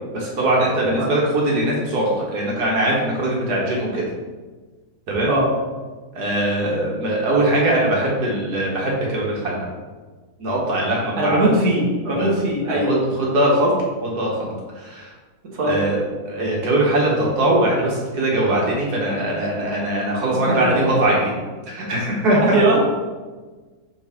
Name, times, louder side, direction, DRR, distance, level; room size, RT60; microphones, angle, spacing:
voice 1, 0.1-4.0 5.1-5.3 6.2-9.7 10.4-11.5 12.1-12.3 12.7-13.7 14.0-15.1 15.6-16.0 16.3-21.4 21.7-22.6, right 1 dB, 80° right, -4 dB, 1.9 m, -21 dB
voice 2, 11.2-13.0 15.5-15.8 20.5-20.6 20.9-21.1 22.4-22.8, right 1 dB, 60° right, -3 dB, 1.7 m, -20 dB
6.4 x 5.3 x 3.6 m, 1.3 s
omnidirectional pair, 1.7 m